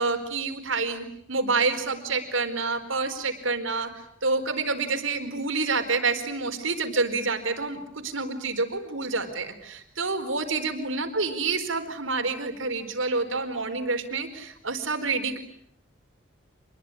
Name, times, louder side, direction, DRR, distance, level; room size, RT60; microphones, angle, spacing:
voice 1, 0.0-15.4, right 3 dB, 80° right, 6 dB, 4.4 m, -28 dB
27.5 x 22.0 x 9.9 m, 0.71 s
head